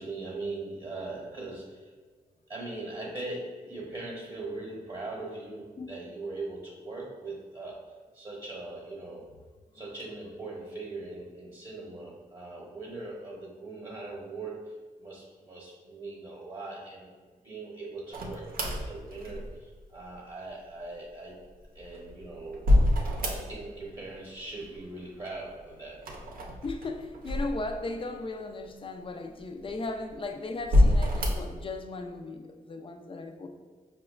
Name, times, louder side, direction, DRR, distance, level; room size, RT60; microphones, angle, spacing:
voice 1, 0.0-1.9 2.5-9.2 9.7-21.4 21.7-22.7 23.2-26.0, right 2 dB, 30° right, -4 dB, 0.9 m, -40 dB
sound 1, 18.1-19.8 21.6-23.8 24.1-24.8 25.9-28.1 28.7-28.8 29.6-30.1 30.6-31.6, left 1 dB, 70° right, 0.6 m, -26 dB
voice 2, 26.6-33.5, left 2 dB, 35° left, 5 dB, 0.4 m, -37 dB
4.7 x 2.2 x 2.3 m, 1.5 s
cardioid pair, 55°, 15 cm